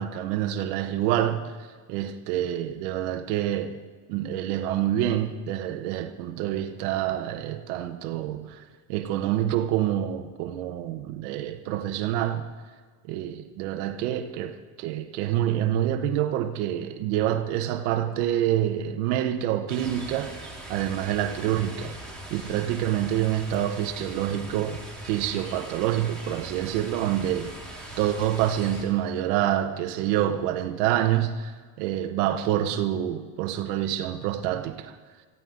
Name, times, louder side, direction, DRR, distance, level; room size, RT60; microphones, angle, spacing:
voice 1, 0.0-3.8 4.1-8.6 8.9-12.5 13.0-20.4 20.7-22.0 22.3-35.0, right 11 dB, 75° right, 1.2 m, -27 dB
sound 1, 19.7-28.8, right 1 dB, ahead, 3.9 m, -41 dB
18.5 x 15.5 x 3.9 m
supercardioid pair, 130°, 45 cm